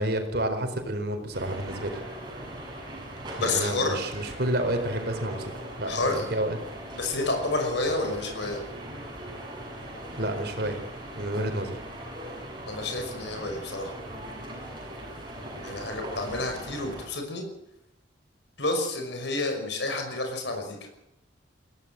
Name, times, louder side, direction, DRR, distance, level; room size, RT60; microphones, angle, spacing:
voice 1, 0.0-2.0 3.4-5.5 5.8-6.6 10.2-10.8 11.2-11.8, right 1 dB, 55° right, 6 dB, 4.4 m, -29 dB
sound 1, 1.3-17.1, right 1 dB, 25° right, 7.6 m, -40 dB
voice 2, 3.4-4.0 5.9-6.3 6.9-8.6 12.7-13.9 15.6-17.5 18.6-20.9, left 2 dB, 65° left, 4 dB, 5.7 m, -29 dB
21.5 x 17.0 x 7.7 m, 0.86 s
head